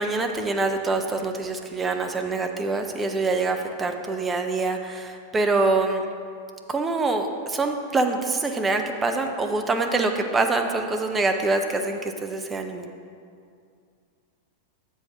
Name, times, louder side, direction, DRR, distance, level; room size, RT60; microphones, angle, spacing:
voice 1, 0.0-6.1 6.7-12.9, right 3 dB, 15° right, 5 dB, 0.6 m, -25 dB
7.9 x 4.7 x 5.6 m, 2.3 s
figure-of-eight pair, 90°, 0 cm